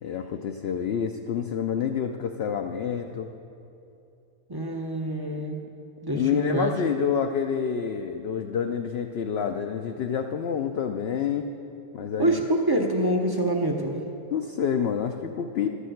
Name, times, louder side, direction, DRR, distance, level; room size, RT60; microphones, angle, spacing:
voice 1, 0.0-3.3 6.1-11.5 11.9-12.5 14.3-15.7, left 7 dB, 70° left, 5 dB, 0.6 m, -28 dB
voice 2, 4.5-5.6 6.0-6.8 12.2-14.0, right 1 dB, 30° right, 2 dB, 0.4 m, -25 dB
12.0 x 6.5 x 7.7 m, 2.8 s
omnidirectional pair, 1.6 m